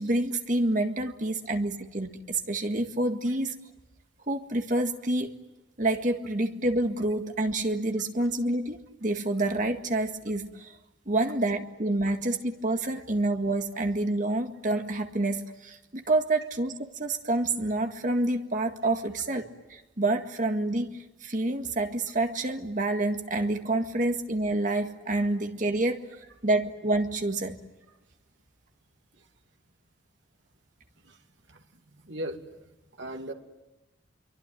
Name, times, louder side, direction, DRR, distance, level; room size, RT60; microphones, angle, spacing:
voice 1, 0.0-3.5 4.3-5.3 5.8-10.8 11.1-26.0 26.4-27.6, right 2 dB, 40° right, 5 dB, 1.9 m, -28 dB
voice 2, 31.5-32.6 32.9-33.3, right 1 dB, 70° right, 3 dB, 2.6 m, -39 dB
26.0 x 24.0 x 9.3 m, 1.0 s
head